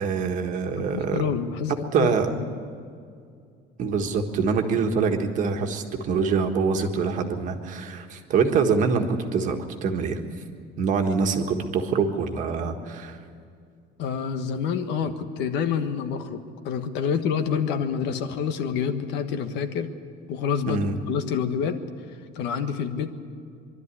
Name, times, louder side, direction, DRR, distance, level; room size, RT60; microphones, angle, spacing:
voice 1, 0.0-1.2 1.9-2.3 3.8-10.2 10.8-13.2 20.7-21.0, right 5 dB, 45° right, 4 dB, 1.6 m, -25 dB
voice 2, 0.8-2.4 14.0-19.9 20.3-21.8 22.3-23.1, left 7 dB, 70° left, 8 dB, 1.4 m, -27 dB
23.5 x 12.5 x 9.8 m, 2.3 s
cardioid pair, 175°, 19 cm